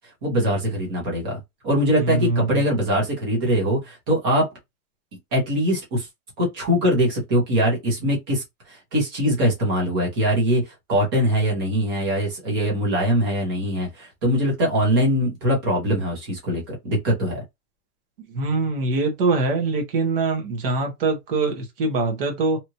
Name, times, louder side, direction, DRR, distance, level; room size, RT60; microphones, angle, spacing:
voice 1, 0.2-4.5 5.3-6.1 6.4-10.6 10.9-17.4, equal, 15° right, 0.7 m, -22 dB
voice 2, 2.0-2.6 18.3-22.6, right 3 dB, 40° right, 0.9 m, -23 dB
2.9 x 2.4 x 2.8 m
supercardioid pair, 175°, 46 cm